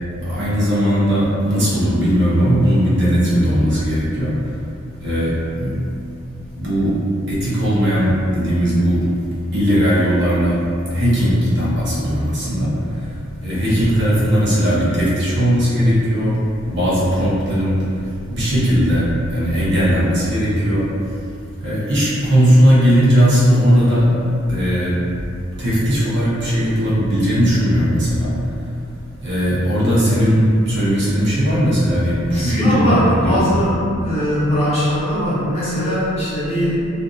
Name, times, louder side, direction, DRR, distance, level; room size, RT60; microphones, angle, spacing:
voice 1, 0.2-4.6 5.0-5.8 6.5-7.0 7.3-9.1 9.5-16.4 16.6-20.9 21.6-24.1 24.5-24.9 25.6-28.7 29.2-33.6, equal, 55° right, -9 dB, 0.8 m, -18 dB
voice 2, 32.3-36.8, equal, 30° left, -11 dB, 0.8 m, -20 dB
2.6 x 2.5 x 2.4 m, 2.5 s
head